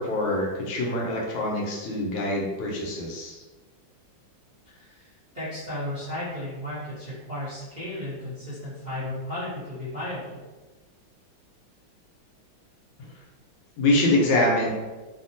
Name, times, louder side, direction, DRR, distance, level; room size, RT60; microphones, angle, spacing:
voice 1, 0.0-3.4 13.8-14.7, left 1 dB, 90° left, -2 dB, 1.5 m, -24 dB
voice 2, 4.6-10.4, left 1 dB, 35° right, -13 dB, 0.7 m, -34 dB
3.5 x 2.1 x 2.6 m, 1.2 s
omnidirectional pair, 2.1 m